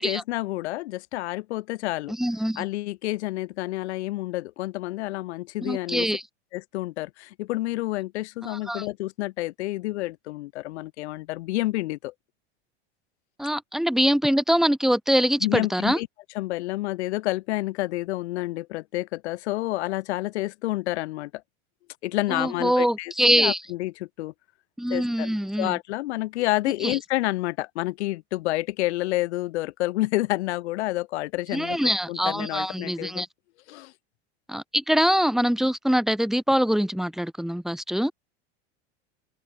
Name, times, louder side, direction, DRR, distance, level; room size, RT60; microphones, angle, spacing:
voice 1, 0.0-2.1 2.6-6.1 6.5-12.1 15.4-16.1 16.3-21.4 22.0-24.3 24.9-33.2 33.7-33.9, left 18 dB, 75° left, 2.9 m, -29 dB
voice 2, 2.2-2.6 5.6-6.2 8.4-8.9 13.4-16.0 22.3-23.6 24.8-25.8 26.8-27.0 31.5-33.3 34.5-38.1, equal, ahead, 7.0 m, -24 dB
open air
supercardioid pair, 115°, 34 cm